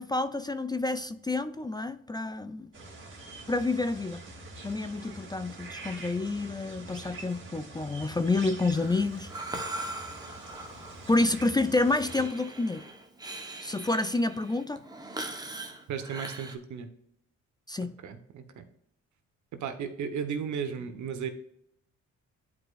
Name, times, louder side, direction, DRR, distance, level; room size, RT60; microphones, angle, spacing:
voice 1, 0.0-2.7 3.5-4.2 4.6-9.3 11.1-12.8 13.6-14.8 17.7-17.9, left 2 dB, 15° left, 0.4 m, -29 dB
sound 1, 2.7-12.3, right 3 dB, 40° right, 2.2 m, -45 dB
Breathing, 8.7-16.6, right 2 dB, 15° right, 1.0 m, -41 dB
voice 2, 15.9-16.9 18.0-18.6 19.5-21.3, right 7 dB, 70° right, 1.2 m, -35 dB
11.0 x 4.9 x 2.4 m
cardioid pair, 90°, 30 cm